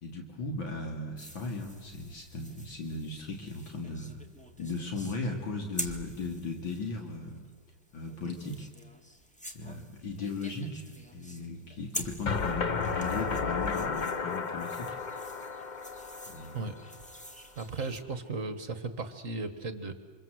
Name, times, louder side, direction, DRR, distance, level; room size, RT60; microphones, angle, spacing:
voice 1, 0.0-4.2 4.6-7.4 7.9-8.7 9.5-10.8 11.1-15.0 16.3-16.7, left 3 dB, 75° left, 2 dB, 3.4 m, -37 dB
sound 1, 1.2-18.0, equal, 5° left, 1.7 m, -46 dB
sound 2, 12.3-17.2, left 5 dB, 40° left, 0.6 m, -33 dB
voice 2, 17.6-19.9, right 3 dB, 45° right, 10 dB, 1.8 m, -36 dB
27.5 x 26.5 x 7.9 m, 1.4 s
omnidirectional pair, 2.1 m